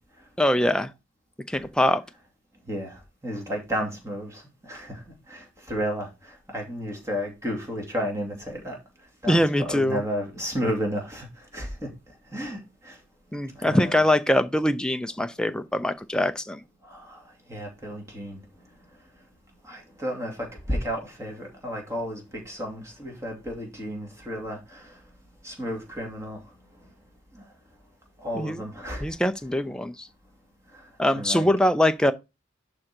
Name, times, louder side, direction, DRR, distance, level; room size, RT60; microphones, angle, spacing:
voice 1, 0.4-0.9 1.5-2.0 9.3-10.0 13.3-16.6 28.3-28.6 29.0-30.1 31.0-32.1, left 1 dB, 5° left, 0.5 m, -23 dB
voice 2, 2.7-13.0 13.6-14.0 16.8-18.4 19.6-25.0 25.4-26.5 26.8-26.9 27.3-27.5 28.2-29.2 30.7-31.5, equal, 15° right, 2.4 m, -33 dB
11.0 x 3.8 x 4.4 m
head